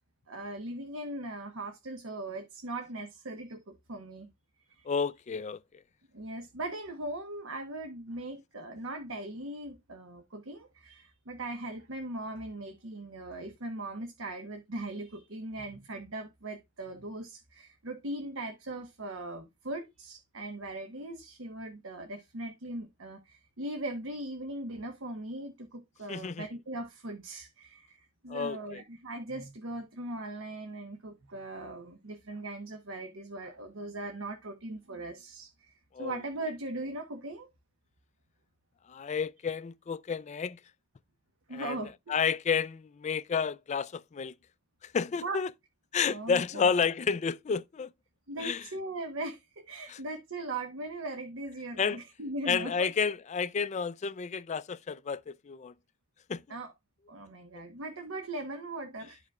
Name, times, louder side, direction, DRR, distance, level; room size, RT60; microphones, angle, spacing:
voice 1, 0.3-4.3 4.7-4.9 6.1-35.7 36.0-37.5 41.5-41.9 45.2-45.4 46.1-46.7 48.3-52.9 56.5-56.7 57.1-59.2, right 2 dB, 85° right, 1.0 m, -39 dB
voice 2, 4.9-5.6 26.1-26.5 28.3-28.8 35.9-36.2 38.9-40.6 41.5-41.8 42.1-44.3 44.8-45.5 45.9-47.9 48.4-48.7 49.9-50.0 51.8-52.0 52.5-55.7 56.3-56.4, left 6 dB, 35° left, 0.4 m, -31 dB
12.5 x 5.1 x 2.3 m
head